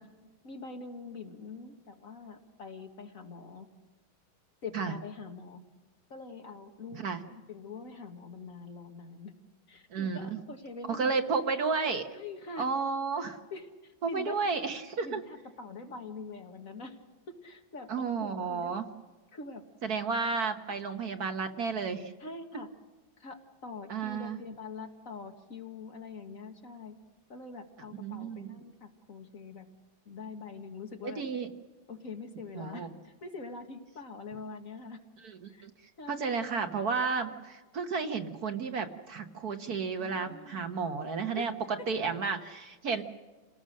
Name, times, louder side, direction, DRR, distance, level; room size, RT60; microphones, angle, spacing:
voice 1, 0.4-3.7 4.6-5.6 6.1-9.3 9.7-11.2 12.1-12.7 13.2-14.4 15.0-17.0 17.4-18.8 19.3-19.6 22.2-22.7 23.2-27.0 27.3-29.7 30.1-31.2 31.9-35.0 35.5-35.7 36.0-36.4 40.0-40.6 41.3-41.5 42.9-43.0, left 4 dB, 45° left, 5 dB, 1.8 m, -44 dB
voice 2, 9.9-10.3 10.9-12.1 12.6-13.4 14.0-15.2 17.9-18.8 19.8-22.1 23.9-24.4 28.0-28.5 31.0-31.5 32.5-32.9 35.2-35.7 36.1-43.0, right 5 dB, 55° right, 7 dB, 1.4 m, -32 dB
28.0 x 18.5 x 6.4 m, 1.2 s
omnidirectional pair, 2.1 m